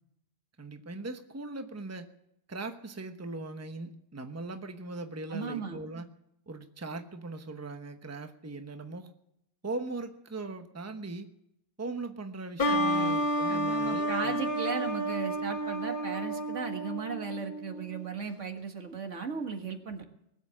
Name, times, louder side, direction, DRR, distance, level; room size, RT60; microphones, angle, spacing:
voice 1, 0.6-2.1 2.5-6.0 6.5-9.1 9.6-11.3 11.8-14.5, right 2 dB, 15° right, 7 dB, 1.0 m, -39 dB
voice 2, 5.3-5.8 12.6-20.0, right 5 dB, 75° right, 5 dB, 2.0 m, -36 dB
sound 1, 12.6-18.0, equal, 45° left, 1.4 m, -31 dB
21.0 x 8.0 x 8.6 m, 0.79 s
omnidirectional pair, 1.3 m